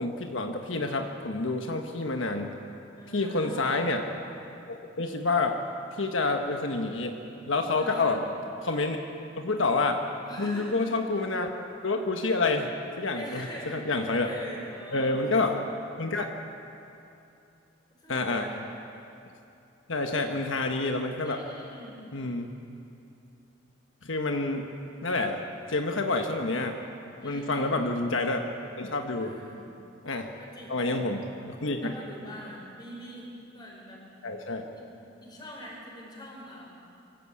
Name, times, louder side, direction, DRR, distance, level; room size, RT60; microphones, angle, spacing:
voice 1, 0.0-2.6 3.1-4.0 4.7-5.6 6.0-7.1 7.5-8.2 8.6-9.0 9.4-10.0 10.4-11.5 11.8-14.3 14.9-15.5 16.0-16.3 18.1-18.5 19.9-21.4 22.1-22.5 24.0-24.7 25.0-25.4 25.7-26.7 27.2-28.4 28.8-29.3 30.0-30.3 30.7-31.2 31.5-32.0 34.2-34.7, left 3 dB, 80° left, 4 dB, 1.3 m, -28 dB
voice 2, 3.0-3.8 7.7-8.2 10.3-10.9 13.1-15.7 18.0-18.6 20.0-20.4 21.2-22.0 27.2-27.8 29.2-29.6 30.4-30.8 31.8-34.0 34.7-34.9 35.2-36.7, equal, 20° left, -3 dB, 5.4 m, -44 dB
24.5 x 13.5 x 8.5 m, 2.8 s
head